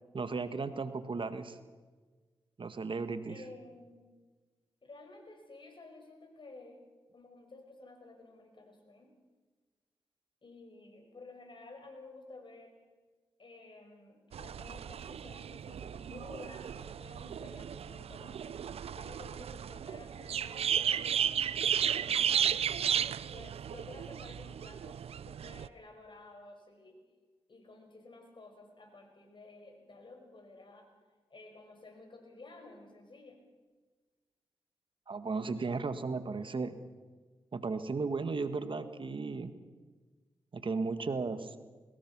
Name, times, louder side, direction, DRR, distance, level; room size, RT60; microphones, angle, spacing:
voice 1, 0.1-1.6 2.6-3.4 35.1-36.8 37.5-39.5 40.5-41.6, right 4 dB, 55° right, 10 dB, 1.6 m, -35 dB
voice 2, 3.3-4.1 4.8-6.8 7.1-9.1 10.4-12.8 13.4-18.7 18.9-21.1 21.7-22.4 23.2-27.0 27.5-30.9 31.3-33.4, left 2 dB, 50° left, 4 dB, 5.9 m, -53 dB
sound 1, 14.3-25.7, right 8 dB, 70° right, 0.6 m, -34 dB
22.0 x 19.5 x 6.2 m, 1.4 s
supercardioid pair, 40°, 10 cm